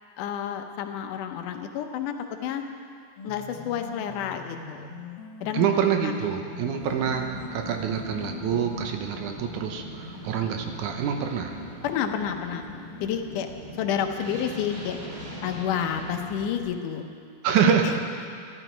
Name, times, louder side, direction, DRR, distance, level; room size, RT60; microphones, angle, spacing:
voice 1, 0.2-2.1 2.4-2.6 3.2-4.9 5.4-5.7 6.0-6.3 11.8-12.7 13.0-13.5 13.8-15.0 15.4-17.1 17.6-17.9, left 9 dB, 85° left, 6 dB, 2.3 m, -30 dB
sound 1, 3.2-8.9, left 3 dB, 60° left, 1.4 m, -42 dB
voice 2, 5.5-11.6 17.4-17.9, right 8 dB, 80° right, 5 dB, 2.3 m, -26 dB
sound 2, 6.8-16.6, left 1 dB, 35° right, 2.3 m, -40 dB
12.5 x 12.5 x 5.0 m, 2.2 s
omnidirectional pair, 3.5 m